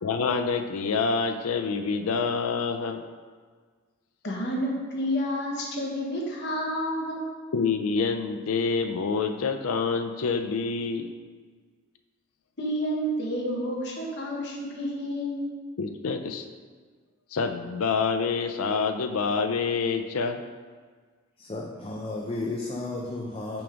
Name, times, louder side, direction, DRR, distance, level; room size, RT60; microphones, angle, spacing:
voice 1, 0.0-3.0 7.5-11.1 15.8-16.4 17.3-20.4, left 5 dB, 85° left, 7 dB, 0.4 m, -27 dB
voice 2, 4.2-7.2 12.6-15.4, equal, 55° left, -2 dB, 1.2 m, -30 dB
voice 3, 21.4-23.6, left 2 dB, 25° left, -2 dB, 0.5 m, -33 dB
5.9 x 3.6 x 5.0 m, 1.6 s
head